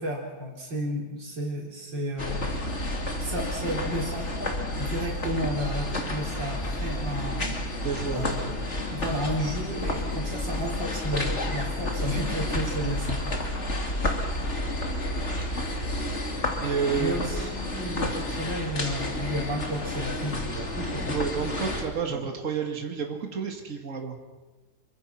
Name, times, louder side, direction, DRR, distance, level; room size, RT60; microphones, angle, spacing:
voice 1, 0.0-2.5 3.2-7.5 8.1-8.6 8.9-13.7 17.0-21.2 22.1-22.3, equal, 90° right, -2 dB, 4.8 m, -32 dB
sound 1, 2.2-21.8, left 1 dB, 40° left, 3.1 m, -30 dB
voice 2, 7.8-8.5 16.6-17.3 21.1-24.2, right 6 dB, 45° right, 3 dB, 2.6 m, -30 dB
27.5 x 23.5 x 6.0 m, 1.2 s
omnidirectional pair, 1.9 m